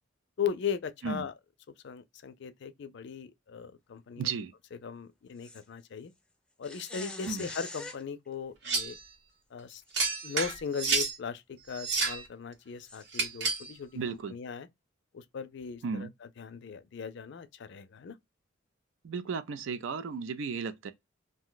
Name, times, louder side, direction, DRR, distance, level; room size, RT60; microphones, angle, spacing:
voice 1, 0.4-1.3 1.8-4.3 4.8-6.1 6.6-9.0 9.5-9.8 10.2-14.7 15.1-16.1 16.4-18.2, left 6 dB, 60° left, 0.4 m, -38 dB
voice 2, 4.2-4.5 7.3-7.5 13.9-14.3 15.8-16.1 19.0-20.9, right 5 dB, 75° right, 0.4 m, -34 dB
sound 1, 5.4-5.6 6.6-8.0 9.9-10.0 10.5-10.6 12.9-13.0, left 2 dB, 5° left, 0.5 m, -43 dB
sound 2, 8.6-9.0 9.9-11.1 11.7-12.3 13.1-13.7, right 4 dB, 60° right, 0.8 m, -30 dB
2.6 x 2.1 x 3.8 m
head